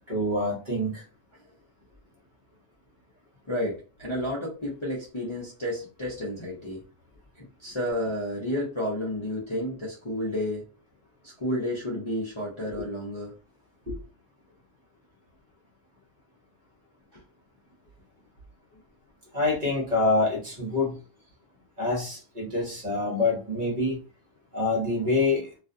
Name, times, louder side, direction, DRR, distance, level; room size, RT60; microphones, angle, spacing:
voice 1, 0.1-1.0 12.8-12.9 13.9-14.0 19.3-21.0 21.8-24.0 24.5-25.5, left 2 dB, 45° right, -4 dB, 1.1 m, -26 dB
voice 2, 3.5-6.8 7.6-10.6 11.2-13.3, left 1 dB, 30° left, -6 dB, 0.6 m, -31 dB
2.5 x 2.3 x 2.5 m, 0.36 s
omnidirectional pair, 1.3 m